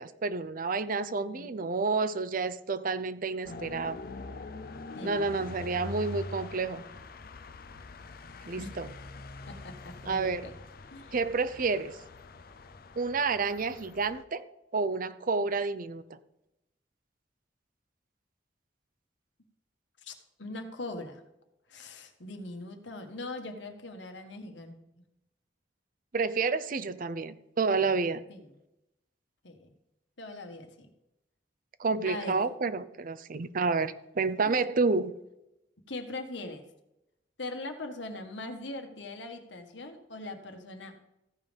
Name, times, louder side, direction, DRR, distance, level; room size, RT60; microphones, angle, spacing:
voice 1, 0.0-4.0 5.0-6.8 8.5-8.9 10.1-10.5 11.1-12.0 13.0-14.4 14.7-16.2 26.1-28.2 31.8-35.1, right 4 dB, 50° right, 14 dB, 0.6 m, -29 dB
voice 2, 1.0-1.8 4.9-5.4 8.6-8.7 9.5-10.5 10.9-11.1 20.0-21.2 21.7-24.7 28.3-28.4 29.4-29.7 30.2-30.9 32.0-32.4 34.4-34.6 35.9-36.6 37.4-41.0, left 2 dB, 75° left, 5 dB, 1.5 m, -41 dB
sound 1, 3.4-14.2, left 3 dB, 55° left, 0.7 m, -44 dB
15.0 x 5.4 x 5.2 m, 0.89 s
head